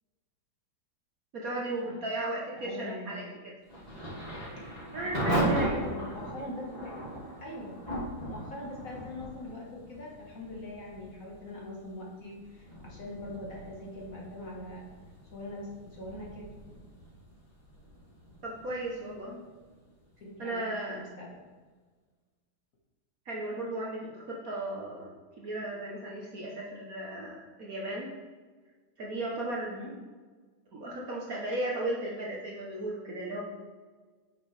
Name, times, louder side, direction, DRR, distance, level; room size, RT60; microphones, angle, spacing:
voice 1, 1.3-3.3 4.9-5.8 18.4-19.4 20.4-21.0 23.3-28.1 29.0-29.7 30.7-33.4, right 1 dB, 50° right, -3 dB, 1.2 m, -35 dB
voice 2, 2.6-3.3 5.5-7.0 7.4-7.8 8.2-14.9 15.3-16.5 20.2-20.6 20.9-21.4 29.6-29.9, left 1 dB, 45° left, -3 dB, 1.7 m, -42 dB
Thunder / Rain, 3.7-20.4, right 1 dB, 20° left, 2.6 m, -37 dB
8.6 x 6.3 x 3.3 m, 1.4 s
omnidirectional pair, 2.3 m